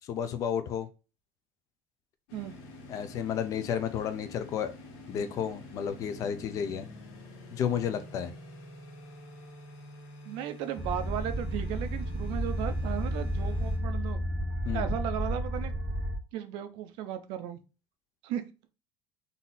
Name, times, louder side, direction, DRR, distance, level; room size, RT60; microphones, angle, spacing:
voice 1, 0.1-0.9 2.9-4.7 5.1-6.9 7.5-8.3 14.6-14.9, left 8 dB, 35° left, 10 dB, 0.5 m, -32 dB
sound 1, 2.3-13.8, left 1 dB, 75° left, 1.7 m, -48 dB
voice 2, 10.2-14.2 14.7-15.7 16.3-17.6 18.2-18.4, right 10 dB, 55° right, 10 dB, 0.6 m, -35 dB
sound 2, 10.8-16.1, equal, 10° right, 0.8 m, -32 dB
4.1 x 2.6 x 3.8 m, 0.31 s
cardioid pair, 175°, 10 cm